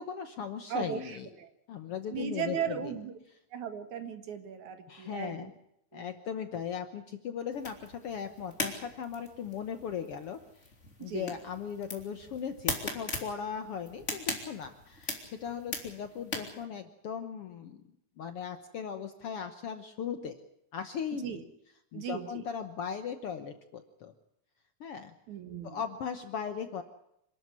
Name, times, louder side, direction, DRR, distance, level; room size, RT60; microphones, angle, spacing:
voice 1, 0.0-1.3 1.7-2.9 4.9-5.5 5.9-10.7 11.0-17.8 18.2-20.4 20.7-21.4 21.9-24.1 24.8-25.1 25.6-26.8, left 7 dB, 60° left, 9 dB, 1.6 m, -38 dB
voice 2, 0.7-1.5 2.1-3.1 3.5-5.5 5.9-6.1 11.0-11.3 21.2-21.4 21.9-22.4 25.3-25.8, right 8 dB, 65° right, 9 dB, 3.0 m, -37 dB
sound 1, 7.5-16.6, left 2 dB, 20° left, 3.2 m, -40 dB
26.5 x 12.5 x 9.7 m, 0.80 s
omnidirectional pair, 3.7 m